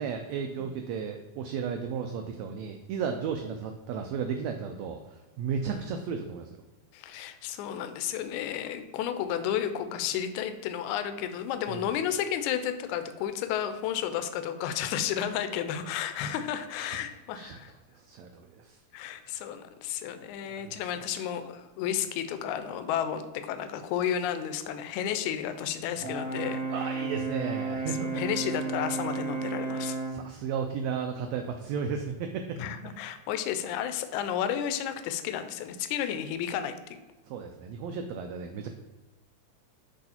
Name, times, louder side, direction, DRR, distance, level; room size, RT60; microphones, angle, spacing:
voice 1, 0.0-6.6 11.7-11.8 16.8-17.0 17.3-17.6 17.9-18.8 20.6-21.3 26.7-28.2 30.0-32.6 37.3-38.7, right 6 dB, 85° right, 5 dB, 1.5 m, -34 dB
voice 2, 6.9-17.7 18.9-27.0 28.1-30.0 32.6-36.7, left 9 dB, 80° left, 9 dB, 1.9 m, -32 dB
Brass instrument, 26.0-30.2, right 4 dB, 50° left, 0.7 m, -33 dB
8.0 x 3.1 x 4.3 m, 1.2 s
omnidirectional pair, 3.6 m